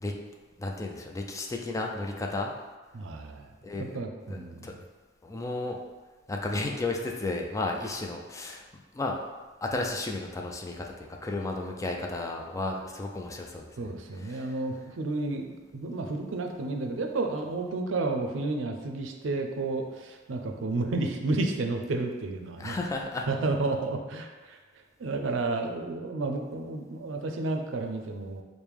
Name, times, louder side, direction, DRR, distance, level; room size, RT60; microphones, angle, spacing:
voice 1, 0.6-2.5 3.6-4.0 4.3-4.7 5.2-5.8 6.3-8.6 8.9-9.2 9.6-13.9 14.2-14.5 22.6-23.3, left 2 dB, 15° left, 1 dB, 0.3 m, -33 dB
voice 2, 2.9-4.7 13.8-22.8 23.3-24.6 25.0-28.4, right 3 dB, 90° right, 4 dB, 0.4 m, -31 dB
4.6 x 2.1 x 3.4 m, 1.3 s
head